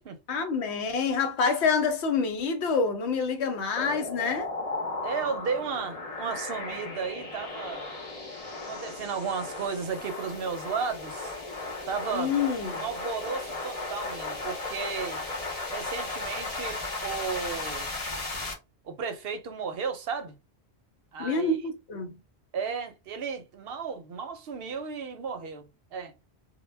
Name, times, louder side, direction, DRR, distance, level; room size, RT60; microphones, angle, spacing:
voice 1, 0.3-4.5 12.1-12.8 21.2-22.2, left 5 dB, 80° left, 0.9 m, -27 dB
sound 1, 3.8-18.5, left 3 dB, 35° left, 0.8 m, -36 dB
voice 2, 5.0-7.8 8.7-11.4 11.9-12.3 12.8-15.2 15.7-17.9 18.8-20.4 21.1-21.6 22.5-26.1, right 5 dB, 70° right, 0.7 m, -34 dB
2.1 x 2.1 x 3.2 m
omnidirectional pair, 1.1 m